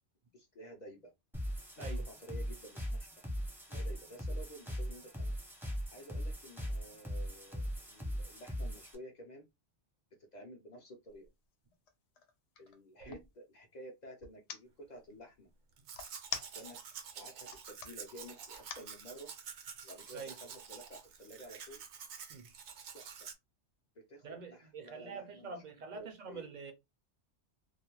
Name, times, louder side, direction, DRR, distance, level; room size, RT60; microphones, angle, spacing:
voice 1, 0.3-1.1 1.8-3.1 3.7-5.4 5.9-9.5 10.2-11.3 12.6-15.5 16.5-16.8 17.2-19.3 19.8-21.8 22.9-23.3 24.0-25.6 25.9-26.5, right 1 dB, 55° left, 0.5 m, -52 dB
sound 1, 1.3-8.9, equal, 5° right, 0.5 m, -39 dB
sound 2, 11.1-11.3 11.7-13.3 14.2-14.6 15.9-16.9 17.4-17.9 18.5-18.9, left 8 dB, 80° left, 0.9 m, -43 dB
Domestic sounds home sounds, 15.8-23.3, right 7 dB, 80° right, 0.9 m, -49 dB
voice 2, 24.2-26.7, right 4 dB, 55° right, 0.5 m, -46 dB
2.4 x 2.1 x 2.9 m
omnidirectional pair, 1.2 m